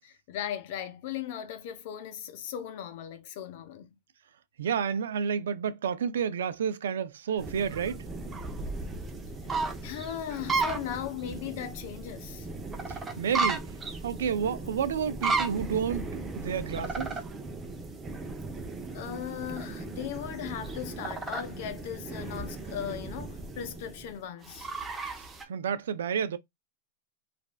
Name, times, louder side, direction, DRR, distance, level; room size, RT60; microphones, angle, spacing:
voice 1, 0.3-3.9 9.8-12.5 18.9-24.7, left 10 dB, 60° left, 0.7 m, -37 dB
voice 2, 4.6-8.1 12.9-13.7 14.0-17.2 25.5-26.4, right 7 dB, 85° right, 0.4 m, -30 dB
sound 1, 7.4-25.4, right 3 dB, 20° right, 0.6 m, -35 dB
3.1 x 2.5 x 2.2 m
hypercardioid pair, 125°, 0 cm